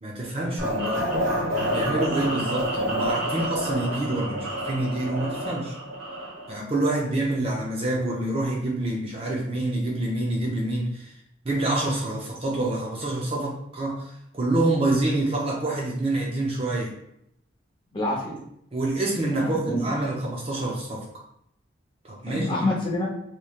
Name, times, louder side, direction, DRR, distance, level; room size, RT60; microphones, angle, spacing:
voice 1, 0.0-0.9 1.5-5.7 6.5-11.1 11.4-16.9 18.7-21.0 22.0-22.5, right 2 dB, 30° right, -2 dB, 0.5 m, -27 dB
sound 1, 0.6-6.5, equal, 75° right, 1.5 m, -28 dB
voice 2, 17.9-18.3 19.3-19.9 22.3-23.1, left 1 dB, 25° left, -3 dB, 0.7 m, -27 dB
3.0 x 3.0 x 2.4 m, 0.74 s
head